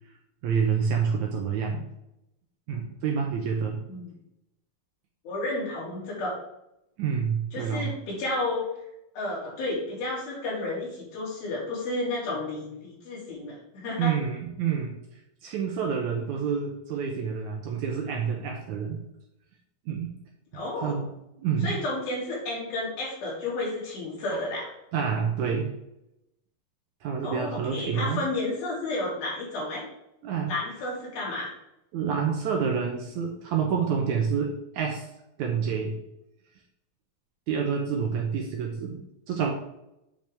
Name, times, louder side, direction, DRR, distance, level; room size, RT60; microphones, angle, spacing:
voice 1, 0.4-1.9 2.7-3.8 7.0-7.9 14.0-15.0 15.4-19.0 19.9-20.1 20.5-21.1 21.4-21.8 24.9-25.7 27.0-28.2 30.2-30.5 31.9-35.1 35.4-36.0 37.5-39.5, right 6 dB, 75° right, 1 dB, 1.9 m, -28 dB
voice 2, 5.2-6.4 7.5-8.7 9.1-14.2 20.5-21.0 21.6-24.7 27.2-29.8 30.5-31.5, left 2 dB, 85° left, -5 dB, 4.7 m, -31 dB
8.9 x 5.3 x 3.4 m, 0.85 s
omnidirectional pair, 4.2 m